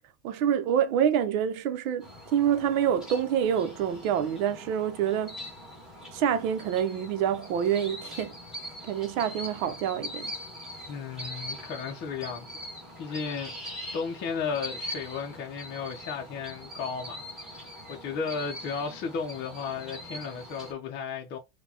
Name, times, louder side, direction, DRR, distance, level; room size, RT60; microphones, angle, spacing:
voice 1, 0.2-5.4 6.1-8.3 8.8-10.3, right 9 dB, 70° right, 0.8 m, -27 dB
sound 1, 2.0-20.7, equal, ahead, 1.3 m, -42 dB
voice 2, 10.9-12.7 13.0-17.2 17.9-21.4, left 5 dB, 25° left, 0.6 m, -34 dB
4.4 x 2.3 x 2.7 m
supercardioid pair, 140°, 42 cm